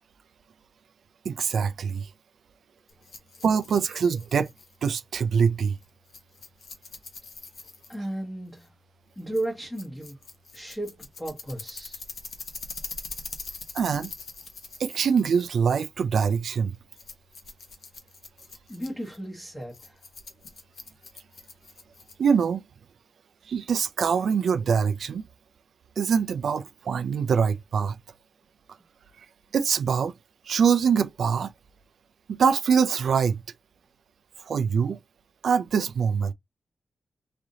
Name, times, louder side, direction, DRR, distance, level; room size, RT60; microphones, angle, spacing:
voice 1, 1.2-2.1 3.4-4.5 4.8-5.7 13.7-14.1 14.8-16.7 22.2-22.6 23.5-25.2 26.0-28.0 29.5-30.1 30.5-31.5 32.3-33.4 34.5-35.0 35.4-36.3, right 6 dB, 85° right, 0.4 m, -24 dB
Rattle, 2.9-22.4, left 4 dB, 65° left, 1.0 m, -44 dB
voice 2, 7.9-8.7 9.1-10.2 10.5-12.0 18.7-20.0, right 1 dB, 10° left, 1.5 m, -34 dB
3.5 x 3.3 x 2.6 m
wide cardioid pair, 120°, 0 cm